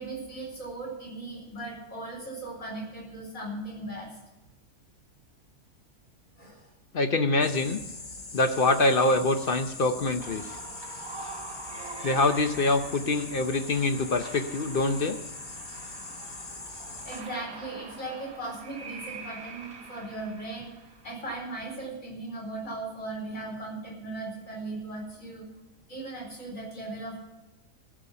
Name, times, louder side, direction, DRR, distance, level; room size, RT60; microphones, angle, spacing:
voice 1, 0.0-4.1 6.4-6.7 17.0-20.7 21.0-25.4 25.9-27.2, right 2 dB, 70° left, -3 dB, 4.8 m, -38 dB
voice 2, 6.9-7.8 8.3-10.6 12.0-15.2, left 2 dB, 50° left, 7 dB, 0.7 m, -25 dB
sound 1, 7.4-17.2, left 3 dB, 35° left, 1.5 m, -42 dB
sound 2, 10.2-21.9, right 3 dB, 90° right, 3.8 m, -44 dB
14.5 x 5.5 x 9.8 m, 0.99 s
omnidirectional pair, 1.5 m